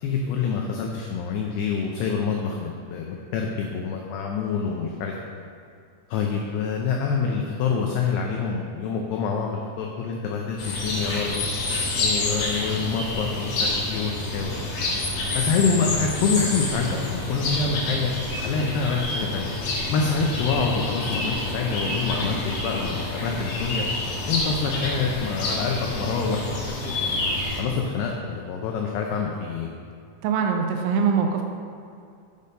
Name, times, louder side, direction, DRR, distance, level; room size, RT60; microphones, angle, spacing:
voice 1, 0.0-5.1 6.1-11.4 12.0-14.7 15.3-18.1 18.4-19.5 19.9-23.9 24.3-27.1 27.6-29.7, left 5 dB, 85° left, 1 dB, 2.3 m, -26 dB
sound 1, 10.6-27.6, left 2 dB, 70° left, 1.9 m, -28 dB
voice 2, 30.2-31.4, right 6 dB, 80° right, 3 dB, 2.9 m, -22 dB
8.4 x 5.4 x 5.3 m, 2.4 s
omnidirectional pair, 5.5 m